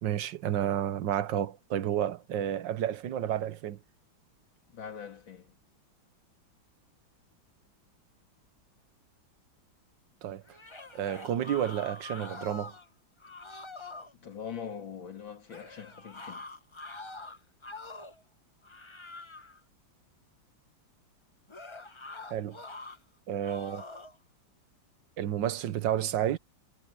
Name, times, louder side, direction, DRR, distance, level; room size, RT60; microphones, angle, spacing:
voice 1, 0.0-3.8 10.2-10.4 10.9-12.7 22.3-22.6 23.3-23.8 25.2-26.4, right 10 dB, 70° right, 1.6 m, -31 dB
voice 2, 4.7-5.5 14.1-16.5, left 7 dB, 80° left, 3.5 m, -42 dB
sound 1, 10.5-12.9 13.2-14.1 15.5-18.2 18.6-19.6 21.5-23.0 23.4-24.2, left 3 dB, 20° left, 1.0 m, -45 dB
omnidirectional pair, 2.1 m